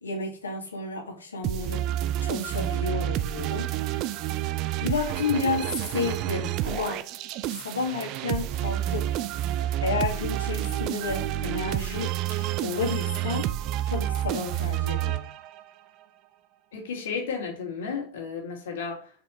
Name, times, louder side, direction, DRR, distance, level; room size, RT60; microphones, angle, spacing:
voice 1, 0.0-1.9 2.2-3.7 4.8-7.1 7.5-9.1 9.8-13.5 13.9-15.3, left 4 dB, 90° left, 2.3 m, -31 dB
sound 1, 1.4-15.7, right 13 dB, 50° right, 0.6 m, -29 dB
voice 2, 16.7-19.1, left 5 dB, 70° left, 2.8 m, -33 dB
6.4 x 5.1 x 4.5 m
hypercardioid pair, 95°, 0 cm